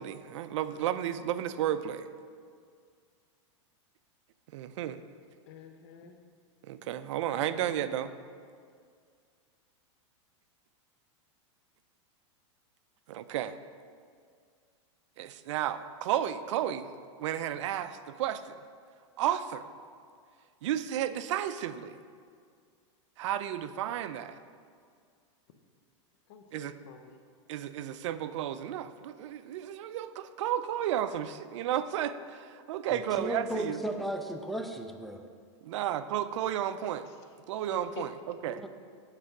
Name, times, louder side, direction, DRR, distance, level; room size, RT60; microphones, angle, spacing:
voice 1, 0.0-2.1 4.5-5.0 6.7-8.1 13.1-13.6 15.2-16.9 17.2-18.6 19.2-19.7 20.6-21.9 23.2-24.4 26.5-26.8 27.5-33.8 35.6-37.1 37.5-38.6, right 11 dB, 75° right, 13 dB, 0.4 m, -33 dB
voice 2, 5.5-6.2 7.4-7.5 26.3-27.2 37.7-38.1, left 7 dB, 60° left, 6 dB, 0.7 m, -48 dB
voice 3, 32.9-35.2 38.5-38.7, right 1 dB, ahead, 4 dB, 0.4 m, -35 dB
8.1 x 3.4 x 5.8 m, 2.1 s
supercardioid pair, 135°, 16 cm